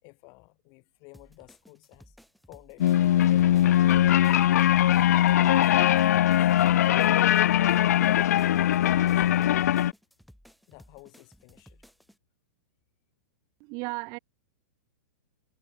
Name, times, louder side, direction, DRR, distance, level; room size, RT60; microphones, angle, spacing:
voice 1, 0.0-2.2 2.5-3.8 5.9-6.5 8.5-9.6 10.7-11.8, left 31 dB, 40° left, 5.1 m, -53 dB
sound 1, 1.1-12.2, equal, ahead, 4.0 m, -56 dB
sound 2, 2.8-9.9, left 12 dB, 75° left, 0.4 m, -21 dB
voice 2, 13.6-14.2, right 31 dB, 40° right, 3.9 m, -34 dB
hypercardioid pair, 135°, 9 cm